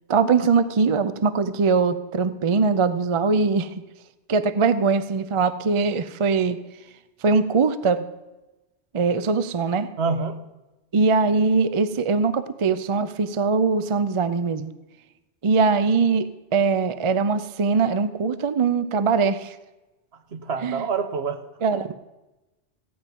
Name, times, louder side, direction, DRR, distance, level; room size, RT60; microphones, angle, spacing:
voice 1, 0.1-3.7 4.3-6.6 7.2-8.1 8.9-9.9 10.9-14.7 15.4-19.6 20.6-20.8 21.6-21.9, right 4 dB, 40° right, 12 dB, 0.4 m, -21 dB
voice 2, 10.0-10.4 20.3-21.4 21.7-21.9, right 5 dB, 65° right, 9 dB, 1.2 m, -27 dB
15.5 x 9.5 x 5.3 m, 1.0 s
omnidirectional pair, 1.2 m